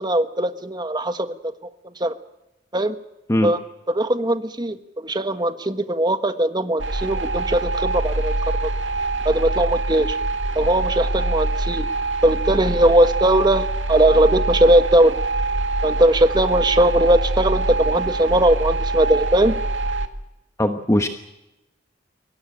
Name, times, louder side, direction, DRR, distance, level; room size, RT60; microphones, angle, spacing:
voice 1, 0.0-1.3 2.0-2.1 2.7-2.9 3.4-3.6 3.9-8.3 9.2-10.2 10.5-11.9 12.2-15.1 15.8-19.6, right 1 dB, 25° right, 9 dB, 1.4 m, -19 dB
sound 1, 6.8-20.1, right 2 dB, 85° right, 2.0 m, -24 dB
voice 2, 20.6-21.1, left 1 dB, 15° left, 7 dB, 1.2 m, -19 dB
22.5 x 18.0 x 8.9 m, 0.91 s
head